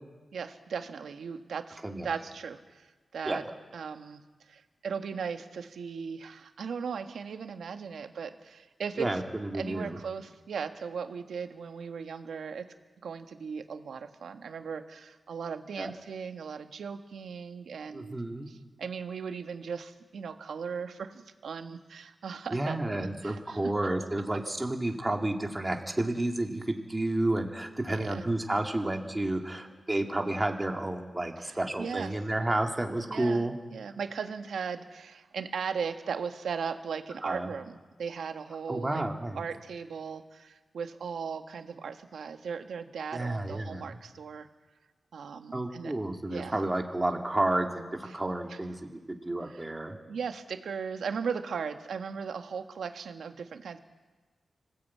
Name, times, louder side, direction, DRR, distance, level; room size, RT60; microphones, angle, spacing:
voice 1, 0.3-2.9 3.1-3.4 3.7-4.2 4.5-9.1 9.5-12.7 13.0-18.2 18.5-23.7 27.9-28.2 31.4-32.1 33.1-33.4 33.7-39.0 39.3-44.5 45.1-45.9 46.3-46.6 48.1-48.2 48.5-48.6 49.5-49.7 50.0-53.8, right 6 dB, 90° right, 7 dB, 1.5 m, -37 dB
voice 2, 9.0-10.0 15.8-15.9 17.9-18.5 22.5-33.5 37.2-37.5 38.7-39.4 43.1-43.9 45.5-50.0, right 1 dB, 15° right, 3 dB, 2.3 m, -31 dB
25.5 x 16.0 x 8.5 m, 1.3 s
wide cardioid pair, 120°, 0 cm